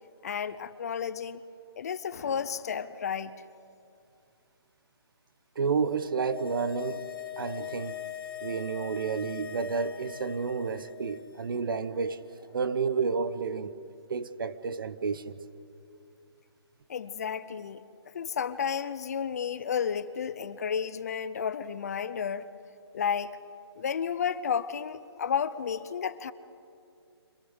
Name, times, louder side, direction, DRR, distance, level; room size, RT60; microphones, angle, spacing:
voice 1, 0.2-1.4 1.8-3.3 16.9-17.8 18.1-22.5 22.9-23.4 23.8-26.3, left 7 dB, 35° left, 0.7 m, -32 dB
voice 2, 5.5-7.1 7.4-8.0 8.4-12.2 12.5-13.8 14.1-15.4, right 5 dB, 50° right, 1.0 m, -30 dB
sound 1, 5.9-11.4 11.7-11.8, left 11 dB, 55° left, 2.4 m, -41 dB
25.5 x 17.5 x 8.1 m
hypercardioid pair, 165°, 14 cm